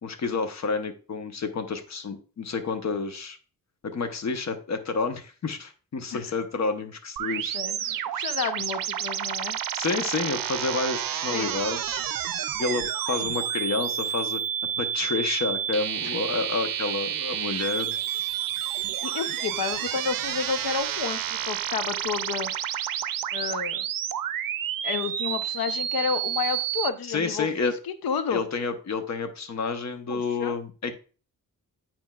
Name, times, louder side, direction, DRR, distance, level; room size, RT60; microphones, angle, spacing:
voice 1, 0.0-3.4 3.8-7.6 7.9-8.0 9.7-12.0 12.6-14.4 14.8-17.9 27.1-27.7 28.3-30.9, left 4 dB, 50° left, 8 dB, 0.8 m, -29 dB
voice 2, 7.2-9.6 11.3-11.5 19.0-22.5 23.3-23.9 24.8-28.4 30.1-30.5, left 6 dB, 85° left, 11 dB, 0.6 m, -31 dB
sound 1, 7.2-26.9, right 10 dB, 70° right, 0.5 m, -30 dB
9.5 x 4.4 x 2.3 m, 0.36 s
wide cardioid pair, 110°, 35 cm